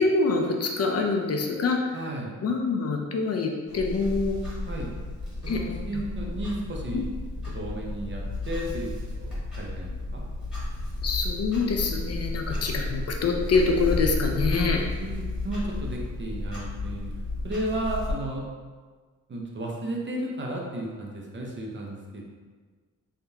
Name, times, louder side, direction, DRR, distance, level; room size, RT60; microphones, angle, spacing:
voice 1, 0.0-2.0 2.4-4.4 5.5-5.6 5.9-6.0 11.0-14.8, left 4 dB, 50° left, 2 dB, 0.5 m, -25 dB
voice 2, 1.9-2.3 4.7-4.9 5.4-7.0 7.5-10.2 14.2-14.7 15.0-17.1 17.4-18.5 19.3-22.2, right 1 dB, 35° right, -1 dB, 0.6 m, -34 dB
Clock, 3.7-18.2, left 1 dB, ahead, 1.4 m, -32 dB
3.5 x 2.8 x 3.4 m, 1.5 s
wide cardioid pair, 135°, 33 cm